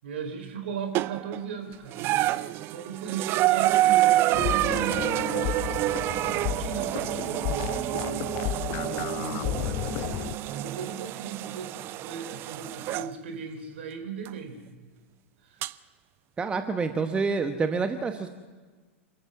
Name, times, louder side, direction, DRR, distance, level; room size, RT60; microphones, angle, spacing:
voice 1, 0.0-5.4 6.1-10.2 10.5-14.6 15.4-15.7, right 6 dB, 55° right, 7 dB, 4.2 m, -38 dB
sound 1, 0.9-1.4 1.9-13.1 14.3-14.4 15.6-15.7, right 16 dB, 35° right, 0.6 m, -27 dB
sound 2, 4.3-10.4, left 13 dB, 40° left, 1.0 m, -33 dB
voice 2, 16.4-18.3, right 4 dB, 15° right, 8 dB, 1.1 m, -27 dB
28.0 x 13.5 x 7.1 m, 1.4 s
figure-of-eight pair, 95°, 7 cm